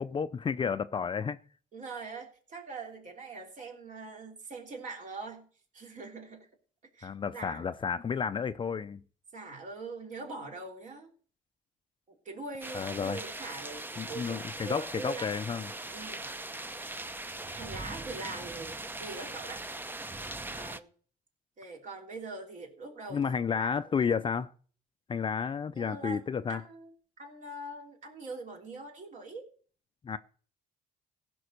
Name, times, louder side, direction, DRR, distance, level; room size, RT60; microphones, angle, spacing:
voice 1, 0.0-1.4 7.0-9.0 12.7-13.2 14.0-15.7 23.1-24.5 25.1-26.6 30.0-30.2, left 6 dB, 30° left, 0.5 m, -31 dB
voice 2, 1.7-5.4 5.7-6.5 6.9-7.6 9.3-11.1 12.1-15.3 15.9-16.3 17.5-19.6 20.5-20.9 21.6-24.3 25.8-26.2 26.5-26.9 27.2-29.5, right 3 dB, 45° right, 3.3 m, -43 dB
sound 1, 12.6-20.8, right 2 dB, 10° right, 0.7 m, -40 dB
15.5 x 6.1 x 6.6 m
cardioid pair, 110°, 17 cm